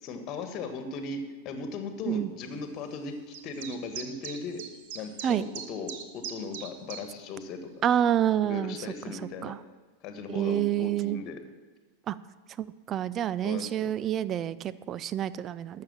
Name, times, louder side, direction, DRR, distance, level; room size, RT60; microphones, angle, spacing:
voice 1, 0.0-4.6 4.9-7.7 8.4-9.5 10.0-11.4 13.4-13.9, left 4 dB, 35° left, 7 dB, 1.6 m, -38 dB
sound 1, 3.3-7.0, right 8 dB, 50° right, 1.1 m, -40 dB
voice 2, 7.8-8.8 9.4-9.6 10.3-11.2 12.1-12.2 12.6-15.8, right 10 dB, 30° right, 17 dB, 0.4 m, -28 dB
12.5 x 6.7 x 7.3 m, 1.3 s
figure-of-eight pair, 90°, 0 cm